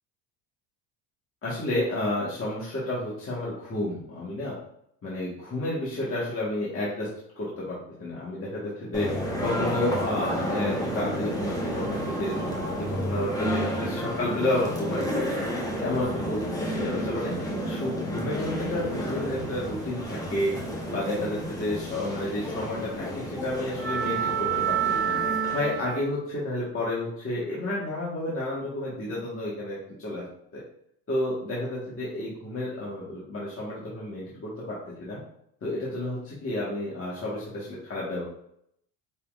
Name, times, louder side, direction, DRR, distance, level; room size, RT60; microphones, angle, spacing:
voice 1, 1.4-4.6 5.0-7.1 7.4-9.1 9.4-20.5 20.9-25.1 25.5-30.2 30.5-30.6 31.1-35.2 35.6-38.2, left 1 dB, 35° left, -7 dB, 1.7 m, -31 dB
sound 1, 8.9-26.1, right 2 dB, 10° left, 1.2 m, -30 dB
5.7 x 3.4 x 2.6 m, 0.71 s
supercardioid pair, 90°, 40 cm